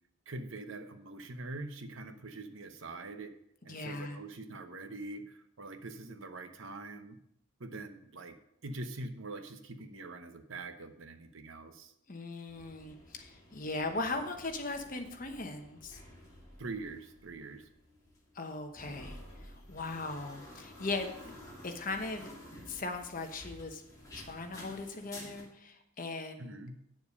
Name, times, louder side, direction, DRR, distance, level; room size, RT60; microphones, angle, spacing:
voice 1, 0.3-3.3 3.6-7.2 7.6-8.4 8.6-11.9 16.6-17.7 26.4-26.8, right 2 dB, 60° right, 8 dB, 0.9 m, -44 dB
voice 2, 3.7-4.2 12.1-16.0 18.3-19.2 19.7-21.3 21.6-22.3 22.7-23.8 24.1-26.6, left 3 dB, 40° left, 5 dB, 1.0 m, -38 dB
sound 1, 12.5-25.4, left 1 dB, 15° left, 2.2 m, -52 dB
9.0 x 7.1 x 5.3 m, 0.75 s
head